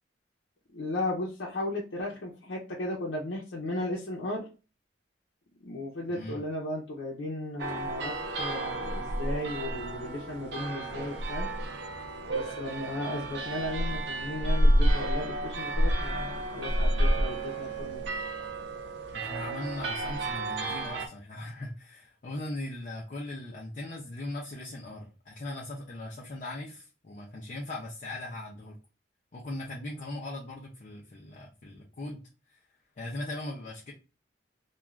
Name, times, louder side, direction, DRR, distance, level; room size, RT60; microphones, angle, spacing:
voice 1, 0.7-4.5 5.6-11.5 12.3-18.0, left 1 dB, 90° left, -4 dB, 0.6 m, -35 dB
voice 2, 6.1-6.4 19.1-28.8 29.3-32.2 32.5-32.6 33.0-33.9, left 2 dB, 45° left, -2 dB, 0.5 m, -39 dB
sound 1, 7.6-21.1, right 1 dB, 65° right, 0.5 m, -30 dB
2.4 x 2.3 x 3.0 m, 0.33 s
head